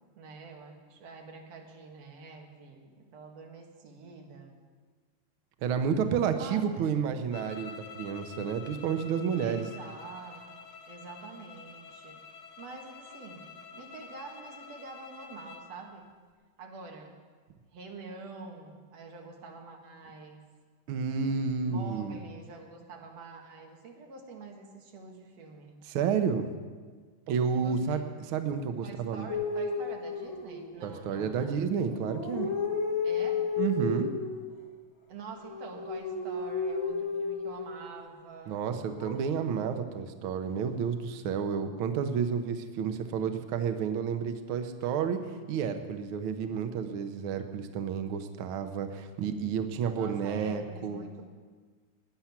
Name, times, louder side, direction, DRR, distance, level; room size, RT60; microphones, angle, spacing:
voice 1, 0.2-4.7 6.3-6.9 9.4-10.6 10.9-12.2 12.6-16.1 16.6-17.2 17.7-20.5 21.7-25.8 27.5-28.2 28.8-31.6 33.0-33.5 35.1-38.6 50.0-51.3, right 3 dB, 60° right, 1 dB, 2.5 m, -46 dB
voice 2, 5.6-9.7 20.9-22.2 25.8-26.5 27.3-28.0 28.3-29.3 30.8-32.5 33.6-34.1 38.5-51.0, right 6 dB, 90° right, 7 dB, 1.1 m, -30 dB
sound 1, 7.3-15.7, left 6 dB, 80° left, 2.6 m, -48 dB
sound 2, 29.3-31.0 31.8-34.4 35.3-37.9 39.0-39.6, left 5 dB, 45° left, 2.4 m, -33 dB
17.5 x 10.0 x 5.9 m, 1.5 s
omnidirectional pair, 3.6 m